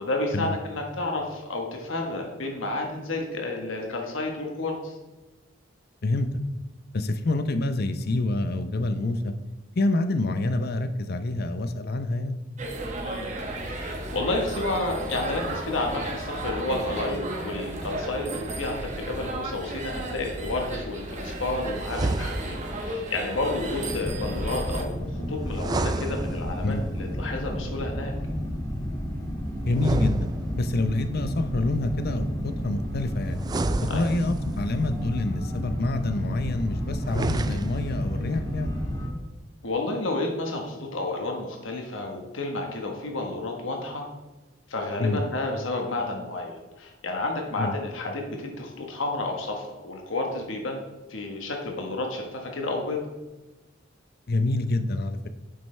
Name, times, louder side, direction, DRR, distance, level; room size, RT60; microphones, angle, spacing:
voice 1, 0.0-5.0 13.0-13.4 13.6-25.0 25.3-28.1 33.9-34.0 39.6-44.1 44.7-50.8 51.1-53.0, left 2 dB, 85° left, 2 dB, 1.3 m, -31 dB
voice 2, 6.9-9.3 9.8-12.4 26.6-26.9 29.6-30.3 30.5-33.4 33.8-38.8 45.0-45.2 47.6-47.7 54.3-55.3, left 2 dB, 55° left, 10 dB, 0.6 m, -27 dB
sound 1, 12.6-24.8, right 1 dB, 40° right, 1.3 m, -34 dB
sound 2, 21.8-22.8 25.5-26.8 29.7-30.9 33.4-34.6 37.0-38.0, right 2 dB, 20° right, 0.3 m, -30 dB
sound 3, 23.8-39.1, equal, 20° left, 1.8 m, -32 dB
9.8 x 7.7 x 3.3 m, 1.1 s
head